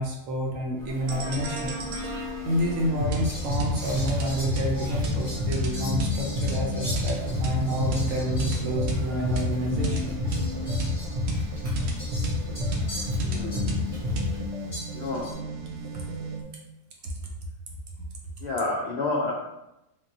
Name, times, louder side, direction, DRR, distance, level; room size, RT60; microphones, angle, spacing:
voice 1, 0.0-1.7 2.0-10.2 15.9-16.0, equal, 70° right, -1 dB, 0.9 m, -29 dB
Sneeze, 0.7-14.5, equal, 45° right, 0.7 m, -42 dB
sound 1, 1.1-16.4, left 1 dB, 85° right, 1.1 m, -29 dB
Fowl, 3.2-9.0 9.3-9.4 10.0-13.9 14.7-15.3, equal, 25° left, 1.1 m, -42 dB
voice 2, 13.2-13.7 14.9-15.3 18.4-19.3, left 2 dB, 75° left, -4 dB, 0.5 m, -29 dB
3.5 x 2.2 x 2.6 m, 0.90 s
omnidirectional pair, 1.6 m